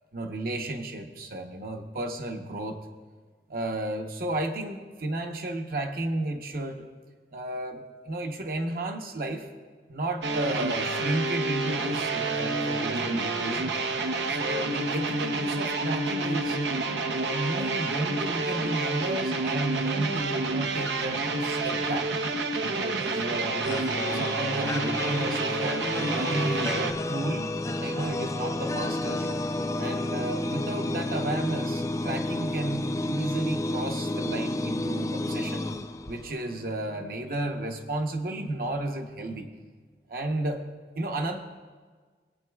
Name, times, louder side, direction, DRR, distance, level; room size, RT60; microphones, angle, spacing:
voice 1, 0.1-2.8 3.5-6.9 7.3-9.5 9.9-13.7 14.3-16.6 17.1-22.1 22.6-27.5 27.8-29.4 29.8-35.6 36.1-39.5 40.1-40.7 41.0-41.4, right 2 dB, 55° right, 4 dB, 0.9 m, -33 dB
sound 1, 10.2-26.9, right 3 dB, 90° right, 0.7 m, -29 dB
sound 2, 23.6-36.6, left 2 dB, 20° left, 0.3 m, -31 dB
19.0 x 8.7 x 2.3 m, 1.5 s
head